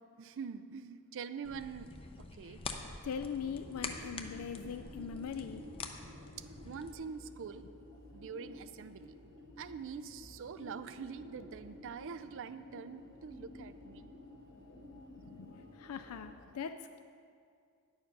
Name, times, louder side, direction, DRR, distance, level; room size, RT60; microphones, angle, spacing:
voice 1, 0.2-2.6 6.4-7.7 8.1-9.2 9.6-14.1, right 6 dB, 60° right, 12 dB, 0.4 m, -45 dB
sound 1, 1.4-6.9, left 3 dB, 25° left, 0.6 m, -46 dB
voice 2, 3.0-5.6 14.5-17.0, left 6 dB, 70° left, 9 dB, 0.4 m, -42 dB
sound 2, 3.4-16.3, left 1 dB, 50° left, 1.4 m, -53 dB
10.0 x 7.1 x 5.2 m, 2.2 s
head